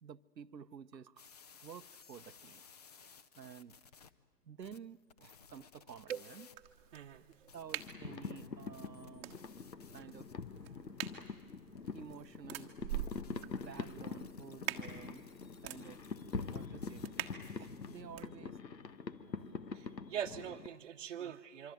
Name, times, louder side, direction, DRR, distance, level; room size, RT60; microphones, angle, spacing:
voice 1, 0.0-1.3 1.6-2.6 3.0-3.8 4.4-6.5 7.5-9.4 9.9-10.8 11.9-12.7 13.3-15.3 15.6-16.0 16.5-17.1 17.3-18.6 19.1-19.6 21.1-21.4, right 7 dB, 90° right, 0.9 m, -52 dB
sound 1, 1.2-4.1 4.6-6.6 7.3-18.0, left 6 dB, 25° left, 0.7 m, -60 dB
sound 2, 6.5-18.3, right 12 dB, 20° right, 1.2 m, -47 dB
voice 2, 6.9-7.5 19.7-21.7, right 9 dB, 40° right, 1.0 m, -42 dB
sound 3, 7.8-20.7, left 5 dB, 90° left, 1.5 m, -45 dB
25.5 x 25.0 x 9.5 m
hypercardioid pair, 145°, 49 cm